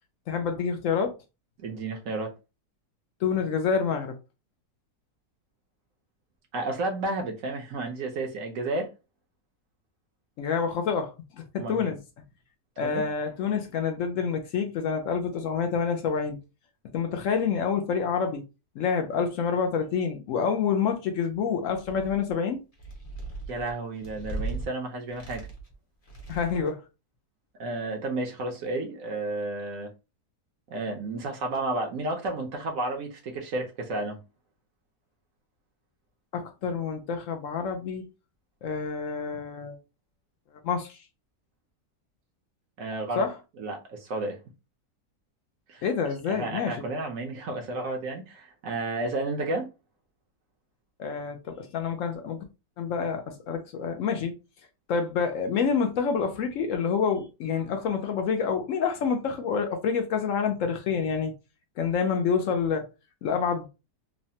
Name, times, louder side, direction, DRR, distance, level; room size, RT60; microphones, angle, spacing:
voice 1, 0.3-1.1 3.2-4.1 10.4-12.0 12.8-16.4 16.9-18.4 18.8-22.6 26.3-26.8 36.3-38.0 38.6-39.8 40.6-41.0 43.2-43.4 45.8-46.8 51.0-52.4 52.8-54.3 54.9-61.3 61.8-62.9 63.2-63.7, left 6 dB, 70° left, 0.8 m, -27 dB
voice 2, 1.6-2.3 6.5-8.9 11.6-11.9 12.8-13.0 23.5-25.4 27.6-29.9 30.7-34.2 42.8-43.3 43.6-44.4 45.7-45.8 46.3-49.7, right 2 dB, 65° right, 1.0 m, -32 dB
sound 1, 21.7-22.3 22.7-24.6 25.1-25.7 26.0-26.7, right 2 dB, 30° left, 0.7 m, -37 dB
3.1 x 2.1 x 2.7 m
omnidirectional pair, 1.7 m